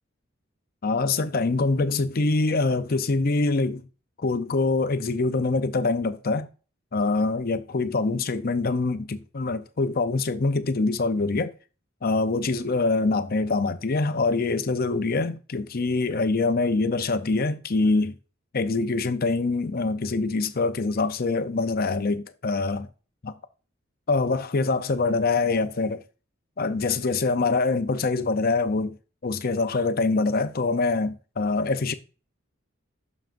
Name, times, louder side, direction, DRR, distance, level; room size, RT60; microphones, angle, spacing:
voice 1, 0.8-3.8 4.2-6.5 6.9-11.5 12.0-18.2 18.5-22.9 23.2-23.3 24.1-26.0 26.6-29.0 29.2-31.9, left 3 dB, 50° left, 0.6 m, -24 dB
9.1 x 6.4 x 2.6 m
head